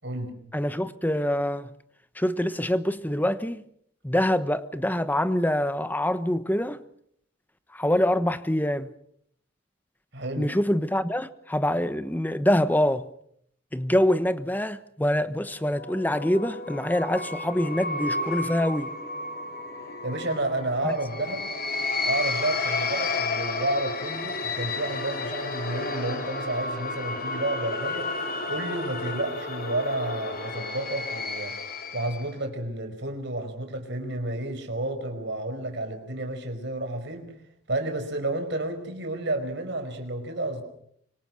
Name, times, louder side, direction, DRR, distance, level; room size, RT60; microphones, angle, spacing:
voice 1, 0.0-0.3 10.1-10.5 20.0-21.4 22.0-28.1 28.5-31.5 31.9-37.3 37.7-40.6, right 2 dB, 55° right, 5.1 m, -31 dB
voice 2, 0.5-1.7 2.2-3.6 4.0-6.8 7.7-8.9 10.4-13.1 13.7-18.9 20.8-20.9, left 1 dB, 10° left, 1.1 m, -25 dB
sound 1, 15.5-32.3, left 3 dB, 45° left, 3.2 m, -32 dB
26.0 x 23.5 x 6.4 m
head